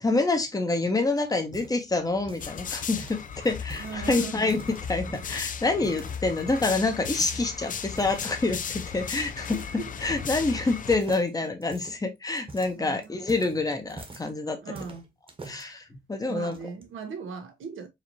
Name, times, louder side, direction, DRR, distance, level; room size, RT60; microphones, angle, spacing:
voice 1, 0.0-14.6 15.4-15.8 16.1-16.6, left 3 dB, 20° left, 1.0 m, -27 dB
sound 1, 0.7-2.7 3.0-4.0 4.3-5.4 5.8-6.8 7.2-7.5 7.9-8.3 8.7-9.1 9.5-9.7 10.0-10.7 10.9-14.3 14.7-15.6 16.3-16.8, right 3 dB, 30° right, 1.2 m, -45 dB
sound 2, 2.4-11.0, left 7 dB, 45° left, 0.5 m, -36 dB
voice 2, 3.8-4.5 9.0-9.1 9.5-9.9 10.6-10.7 12.8-13.1 14.6-15.1 16.3-17.9, right 6 dB, 85° right, 1.1 m, -38 dB
5.0 x 2.8 x 2.8 m
wide cardioid pair, 135°, 20 cm